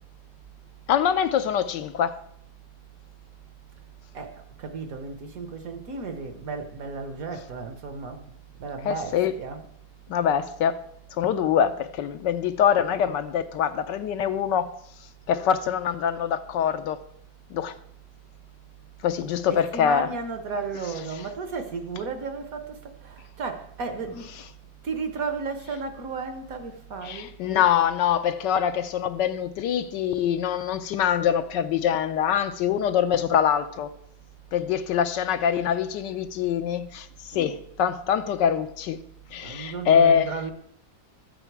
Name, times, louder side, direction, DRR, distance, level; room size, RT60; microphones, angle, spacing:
voice 1, 0.9-2.2 8.8-9.3 10.1-10.8 11.2-14.7 15.3-17.0 17.5-17.7 19.0-20.1 27.0-33.9 34.5-37.1 37.3-39.0 39.3-40.3, left 8 dB, 75° left, 1.2 m, -24 dB
voice 2, 4.1-8.3 8.6-9.6 19.5-24.4 24.8-27.4 37.3-37.5 39.4-40.5, right 4 dB, 55° right, 1.2 m, -34 dB
13.0 x 9.0 x 4.6 m
omnidirectional pair, 2.1 m